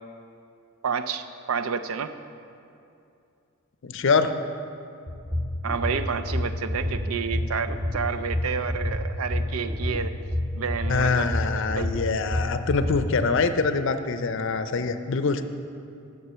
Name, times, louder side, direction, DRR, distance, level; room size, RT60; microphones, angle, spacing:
voice 1, 0.8-2.1 5.6-10.1 10.5-11.3 11.8-11.9, right 6 dB, 90° right, 10 dB, 0.5 m, -29 dB
voice 2, 3.8-4.3 10.9-15.4, left 4 dB, 60° left, 10 dB, 0.5 m, -24 dB
sound 1, 5.1-13.0, left 1 dB, 20° right, 0.6 m, -28 dB
9.7 x 6.7 x 6.7 m, 2.6 s
head